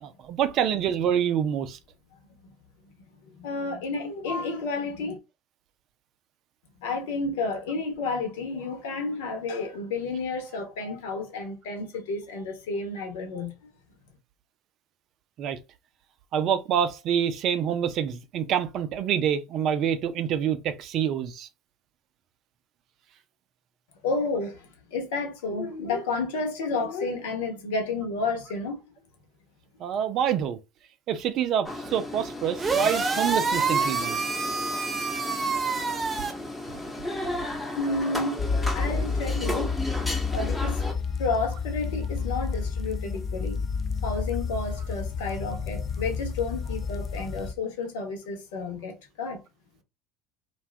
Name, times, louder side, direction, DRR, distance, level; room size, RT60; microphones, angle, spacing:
voice 1, 0.0-1.8 15.4-15.6 16.3-21.5 29.8-30.6 31.1-34.2, right 9 dB, 55° right, 0.5 m, -26 dB
voice 2, 3.4-5.2 6.8-13.5 24.0-28.8 37.7-39.8 40.3-40.8 41.2-43.6 44.0-49.4, left 3 dB, 75° left, 1.0 m, -31 dB
sound 1, 31.6-40.9, left 1 dB, 10° left, 0.9 m, -35 dB
sound 2, 32.6-36.3, right 4 dB, 20° right, 0.8 m, -27 dB
sound 3, 38.4-47.5, left 5 dB, 35° left, 0.5 m, -30 dB
2.5 x 2.3 x 3.3 m
hypercardioid pair, 80°, 0 cm